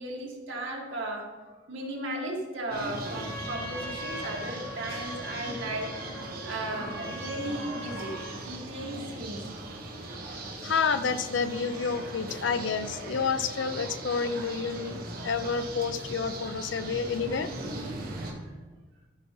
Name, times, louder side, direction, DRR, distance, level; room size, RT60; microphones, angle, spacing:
voice 1, 0.0-5.9 6.4-9.4, right 1 dB, 80° right, -2 dB, 2.0 m, -36 dB
sound 1, 2.7-18.3, right 2 dB, 50° right, 1.4 m, -39 dB
Trumpet, 2.9-8.4, left 1 dB, 10° left, 2.8 m, -41 dB
voice 2, 10.3-17.5, left 5 dB, 75° left, 11 dB, 0.5 m, -29 dB
13.5 x 6.0 x 3.1 m, 1.3 s
head